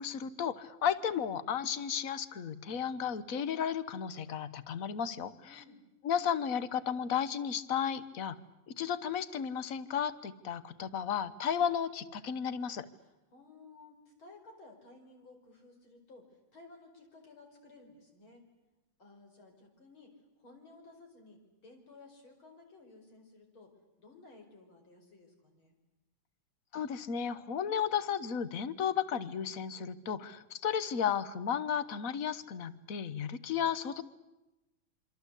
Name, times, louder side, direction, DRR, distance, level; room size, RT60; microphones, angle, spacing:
voice 1, 0.0-5.6 6.0-8.4 8.7-12.9 26.7-34.0, left 8 dB, 50° left, 16 dB, 1.3 m, -34 dB
voice 2, 5.4-5.9 13.0-18.5 19.0-25.8, left 3 dB, 75° left, 3 dB, 5.9 m, -56 dB
27.0 x 25.5 x 8.3 m, 1.0 s
omnidirectional pair, 2.3 m